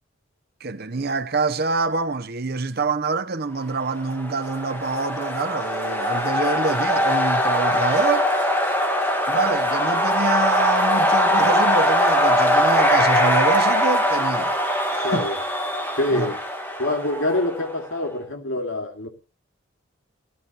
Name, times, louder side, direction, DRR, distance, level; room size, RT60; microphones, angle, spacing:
voice 1, 0.6-8.3 9.3-14.5 14.9-15.3 16.1-16.3, right 3 dB, 50° right, 0.8 m, -26 dB
sound 1, 4.0-17.8, equal, 10° left, 1.5 m, -21 dB
voice 2, 15.0-15.4 16.0-16.4 16.8-19.1, left 1 dB, 70° left, 2.5 m, -25 dB
18.0 x 14.0 x 2.9 m
head